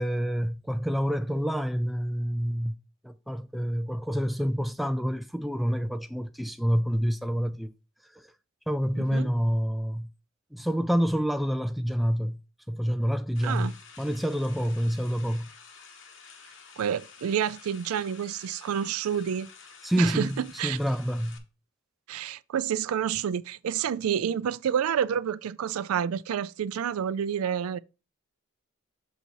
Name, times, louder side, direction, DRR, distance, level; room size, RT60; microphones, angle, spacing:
voice 1, 0.0-2.7 3.0-7.7 8.2-8.3 8.7-10.1 10.5-12.4 12.7-15.5 19.8-21.4, equal, ahead, 0.3 m, -27 dB
voice 2, 8.9-9.3 13.4-13.7 16.8-19.5 20.0-20.8 22.1-27.8, right 8 dB, 90° right, 0.4 m, -29 dB
sound 1, 13.3-21.4, left 5 dB, 60° left, 1.1 m, -50 dB
6.8 x 4.0 x 4.6 m
head